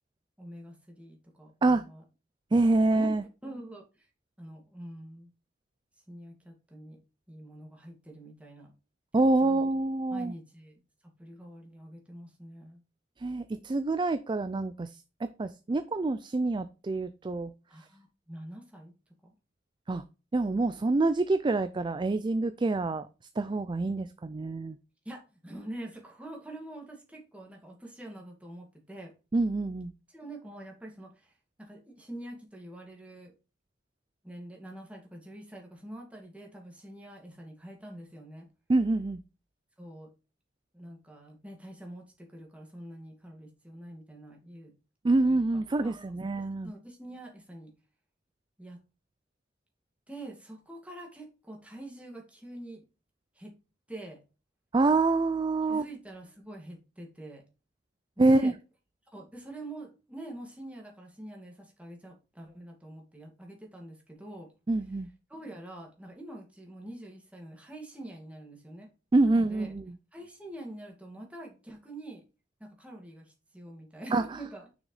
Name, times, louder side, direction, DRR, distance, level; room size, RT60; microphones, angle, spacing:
voice 1, 0.4-2.0 2.9-3.1 3.4-4.1 4.4-5.3 6.1-7.0 7.3-8.7 9.1-9.7 10.1-12.8 17.7-18.9 19.2-19.3 25.0-29.1 30.1-31.3 31.6-33.3 34.2-38.5 39.8-40.1 40.7-44.7 45.2-45.4 45.7-46.0 46.2-46.3 46.6-47.7 48.6-48.8 50.1-52.9 53.4-53.6 53.9-54.2 55.7-57.4 58.2-58.5 59.1-64.5 65.3-68.9 69.2-69.8 70.1-72.2 72.6-74.7, right 1 dB, 5° right, 2.2 m, -45 dB
voice 2, 2.5-3.2 9.1-10.3 13.2-14.9 15.4-17.5 19.9-20.0 20.3-23.1 23.4-24.8 29.3-29.9 38.7-39.2 45.0-46.7 54.7-55.8 58.2-58.5 64.7-65.1 69.1-69.8 74.1-74.4, right 2 dB, 25° right, 0.4 m, -26 dB
6.4 x 6.4 x 3.2 m
head